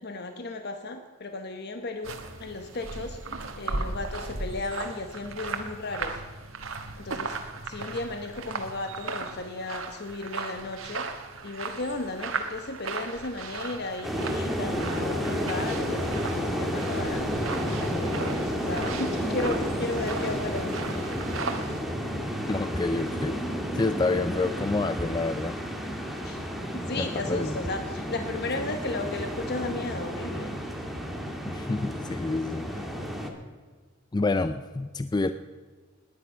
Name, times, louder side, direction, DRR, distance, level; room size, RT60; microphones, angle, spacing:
voice 1, 0.0-3.2 3.6-6.2 7.0-7.4 7.6-17.5 17.8-21.0 26.2-26.4 26.7-30.5, left 2 dB, 55° left, 7 dB, 1.0 m, -35 dB
sound 1, 2.0-21.8, right 4 dB, 85° right, 1.4 m, -37 dB
sound 2, 14.0-33.3, equal, ahead, 1.7 m, -31 dB
voice 2, 22.5-23.4 23.7-25.6 27.0-27.6 31.4-32.9 34.1-35.3, left 3 dB, 20° left, 11 dB, 0.4 m, -28 dB
19.0 x 9.8 x 5.6 m, 1.4 s
head